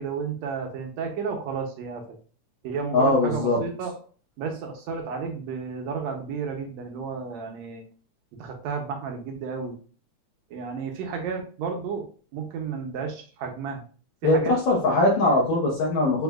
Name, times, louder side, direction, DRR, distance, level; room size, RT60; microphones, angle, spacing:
voice 1, 0.0-2.0 2.6-3.9 4.4-7.8 8.4-9.7 10.5-12.1 12.3-13.8 14.2-14.5, right 5 dB, 75° right, 3 dB, 1.8 m, -32 dB
voice 2, 2.9-3.6 14.2-16.2, left 2 dB, 70° left, -3 dB, 2.1 m, -21 dB
6.1 x 2.6 x 2.3 m, 0.40 s
omnidirectional pair, 3.5 m